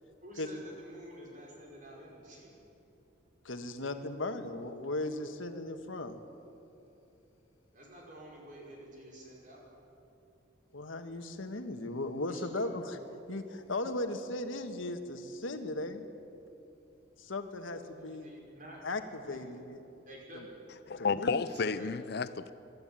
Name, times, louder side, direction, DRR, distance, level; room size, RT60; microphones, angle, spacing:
voice 1, 0.2-2.5 7.7-9.6 12.3-12.5 18.0-18.8 20.1-20.4 21.4-21.9, right 1 dB, 40° right, -3 dB, 5.6 m, -50 dB
voice 2, 3.4-6.2 10.7-13.0 13.3-16.1 17.2-18.3 18.8-19.8 20.3-20.4 21.1-21.3 21.6-21.7, left 2 dB, 85° left, 7 dB, 1.4 m, -37 dB
voice 3, 20.9-22.5, left 4 dB, 55° left, 14 dB, 0.5 m, -31 dB
24.5 x 12.5 x 8.9 m, 2.9 s
head